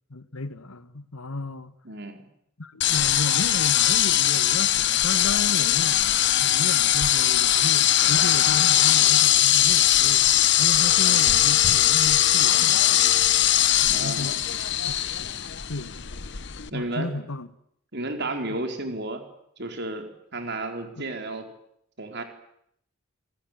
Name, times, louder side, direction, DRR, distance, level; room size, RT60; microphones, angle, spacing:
voice 1, 0.1-1.7 2.6-10.3 10.6-13.3 13.8-14.4 14.8-16.0 16.7-17.5 18.5-18.6 21.0-21.1, left 2 dB, 85° left, 1.6 m, -34 dB
voice 2, 1.8-2.2 13.9-14.3 16.7-17.1 17.9-19.2 19.6-21.4 22.0-22.2, right 2 dB, 50° right, 4.7 m, -32 dB
sound 1, 2.8-16.7, left 12 dB, 55° left, 1.0 m, -20 dB
29.0 x 21.0 x 9.4 m
head